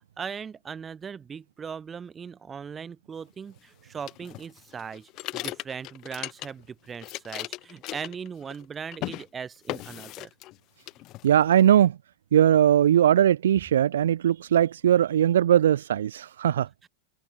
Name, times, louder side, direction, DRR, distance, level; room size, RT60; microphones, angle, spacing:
voice 1, 0.2-10.3 16.8-16.9, right 6 dB, 20° right, 1.5 m, -39 dB
sound 1, 4.1-6.7 6.9-8.6 8.9-9.2 9.7-10.6 10.9-11.6, left 18 dB, 40° left, 0.6 m, -37 dB
voice 2, 11.2-11.9 12.3-16.7, right 10 dB, 60° right, 0.5 m, -20 dB
figure-of-eight pair, 90°, 0 cm